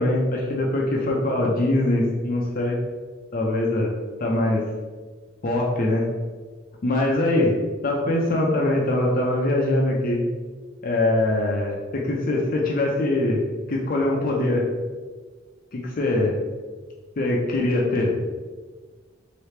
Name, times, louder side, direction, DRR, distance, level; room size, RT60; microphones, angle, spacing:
voice 1, 0.0-2.8 3.3-3.9 4.2-4.6 5.4-6.1 6.8-7.5 7.8-10.2 10.8-13.4 13.7-14.7 15.7-16.4 17.2-18.3, left 1 dB, 45° left, -1 dB, 0.5 m, -22 dB
3.2 x 2.9 x 3.2 m, 1.4 s
head